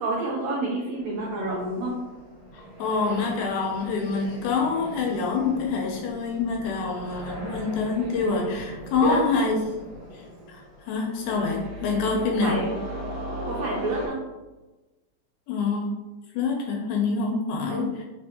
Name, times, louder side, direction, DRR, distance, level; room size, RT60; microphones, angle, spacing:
voice 1, 0.0-1.9 9.0-9.2 12.4-12.7 13.5-14.2 17.7-17.9, right 2 dB, 85° right, -4 dB, 1.5 m, -28 dB
sound 1, 0.9-14.1, right 1 dB, 55° right, 1.4 m, -39 dB
voice 2, 2.5-9.6 10.1-10.2 10.5-12.6 15.5-15.9 16.3-18.0, left 4 dB, 80° left, 1 dB, 1.9 m, -26 dB
4.2 x 3.9 x 2.7 m, 1.1 s
omnidirectional pair, 3.8 m